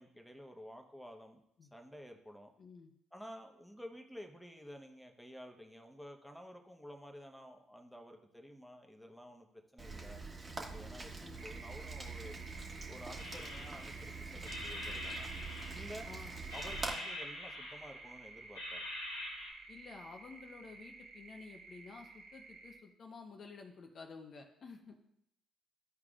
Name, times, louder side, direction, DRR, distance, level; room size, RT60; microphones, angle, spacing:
voice 1, 0.0-1.4 1.7-2.5 3.1-10.2 10.6-12.4 12.9-15.3 15.7-16.1 16.5-18.9, equal, ahead, 3 dB, 1.2 m, -52 dB
voice 2, 2.6-2.9 11.2-11.4 16.1-16.4 19.7-25.0, left 4 dB, 50° left, 3 dB, 0.8 m, -52 dB
Rain, 9.8-16.9, right 3 dB, 30° right, 1.4 m, -45 dB
sound 1, 11.4-22.8, right 4 dB, 60° right, 1.0 m, -52 dB
sound 2, 13.2-14.0 14.4-16.1 16.5-18.1 18.5-19.5, left 1 dB, 90° left, 1.8 m, -44 dB
12.5 x 4.8 x 2.5 m, 0.75 s
hypercardioid pair, 50°, 0 cm